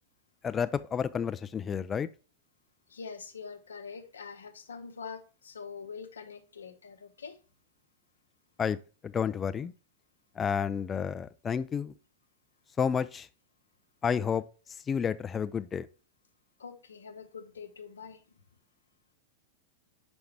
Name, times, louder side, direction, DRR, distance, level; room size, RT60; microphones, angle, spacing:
voice 1, 0.4-2.1 8.6-8.8 9.0-9.7 10.4-11.9 12.8-13.3 14.0-14.4 14.9-15.9, left 7 dB, 20° left, 0.3 m, -30 dB
voice 2, 2.9-7.4 16.6-18.4, left 5 dB, 70° left, 0.8 m, -44 dB
5.7 x 5.3 x 3.2 m
figure-of-eight pair, 90°, 0 cm